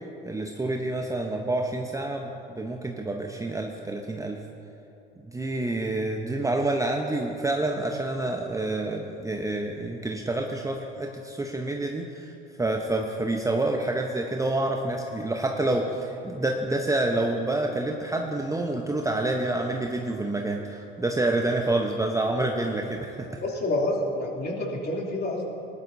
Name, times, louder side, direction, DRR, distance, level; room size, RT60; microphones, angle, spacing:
voice 1, 0.2-4.4 5.3-12.3 12.6-23.4, right 2 dB, 10° right, 2 dB, 0.9 m, -28 dB
voice 2, 23.4-25.5, left 1 dB, 30° left, -2 dB, 2.9 m, -28 dB
19.0 x 11.5 x 2.7 m, 2.8 s
hypercardioid pair, 70°, 31 cm